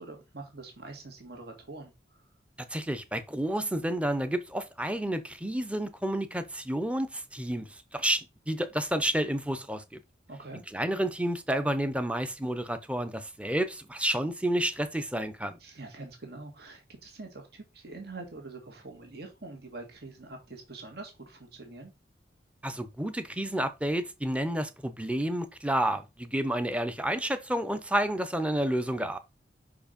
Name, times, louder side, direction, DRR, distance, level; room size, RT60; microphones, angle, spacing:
voice 1, 0.0-2.2 10.3-10.6 15.6-21.9, right 3 dB, 65° right, 1.9 m, -45 dB
voice 2, 2.7-10.0 10.7-15.6 22.6-29.2, right 1 dB, 5° right, 0.7 m, -30 dB
5.6 x 4.8 x 5.1 m
head